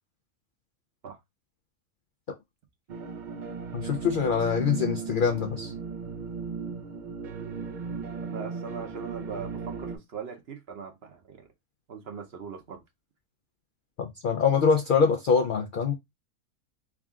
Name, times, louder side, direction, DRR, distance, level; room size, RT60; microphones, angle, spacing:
sound 1, 2.9-10.0, right 5 dB, 80° right, 0.4 m, -36 dB
voice 1, 3.7-5.7 14.0-15.9, left 6 dB, 85° left, 0.4 m, -24 dB
voice 2, 8.3-11.5 11.9-12.8, right 6 dB, 55° right, 0.8 m, -40 dB
3.6 x 2.3 x 3.5 m
omnidirectional pair, 1.5 m